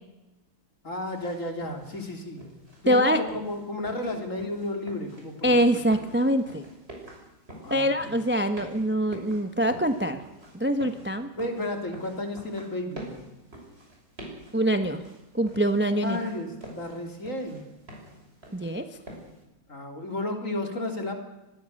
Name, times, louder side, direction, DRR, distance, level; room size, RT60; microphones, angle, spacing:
voice 1, 0.8-2.5 2.8-5.8 7.6-8.2 11.4-13.1 16.0-17.6 19.7-21.1, left 1 dB, 40° left, 3 dB, 3.8 m, -33 dB
sound 1, 1.0-19.4, right 1 dB, 30° right, 6.6 m, -47 dB
voice 2, 2.9-3.2 5.4-6.6 7.7-10.2 10.5-11.3 14.5-15.0 15.3-16.2 18.5-18.9, equal, 10° right, 8 dB, 0.8 m, -24 dB
25.0 x 20.0 x 6.6 m, 0.99 s
omnidirectional pair, 2.1 m